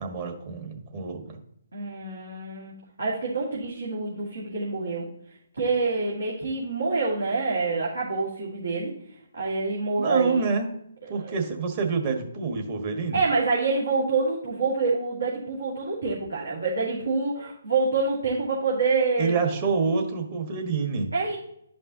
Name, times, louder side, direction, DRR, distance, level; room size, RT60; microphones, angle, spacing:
voice 1, 0.0-1.4 10.0-10.7 11.1-13.2 19.2-21.1, right 4 dB, 40° right, 3 dB, 1.5 m, -27 dB
voice 2, 1.7-2.7 3.0-5.1 5.6-8.9 9.3-10.4 11.2-11.3 13.1-19.4 21.1-21.4, right 4 dB, 80° right, -5 dB, 2.0 m, -26 dB
11.5 x 5.2 x 2.9 m, 0.74 s
figure-of-eight pair, 140°, 0 cm